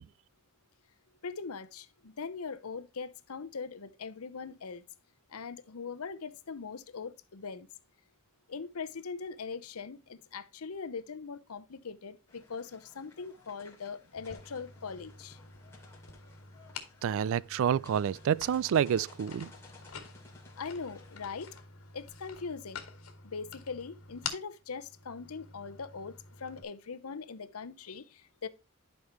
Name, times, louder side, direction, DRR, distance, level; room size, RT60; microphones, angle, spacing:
voice 1, 1.2-4.8 5.3-7.7 8.5-15.4 20.6-21.6 21.9-22.8 23.2-26.1 26.4-28.5, left 5 dB, 90° left, 0.8 m, -41 dB
sound 1, 12.3-21.6, left 3 dB, 10° left, 2.6 m, -57 dB
sound 2, 14.1-26.6, left 5 dB, 75° left, 1.9 m, -48 dB
voice 2, 17.0-19.5, right 8 dB, 65° right, 0.3 m, -28 dB
11.5 x 5.3 x 3.0 m
head